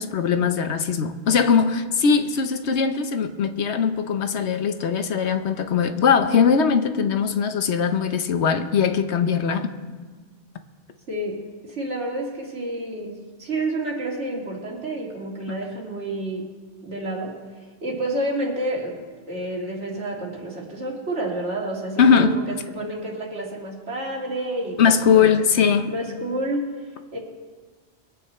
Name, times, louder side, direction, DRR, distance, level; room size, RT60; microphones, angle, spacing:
voice 1, 0.0-9.7 22.0-22.3 24.8-25.9, left 6 dB, 75° left, 9 dB, 1.1 m, -20 dB
voice 2, 11.1-16.5 16.8-17.4 17.8-25.3 25.9-27.2, right 1 dB, 90° right, -1 dB, 2.7 m, -29 dB
22.5 x 8.7 x 4.3 m, 1.4 s
omnidirectional pair, 1.2 m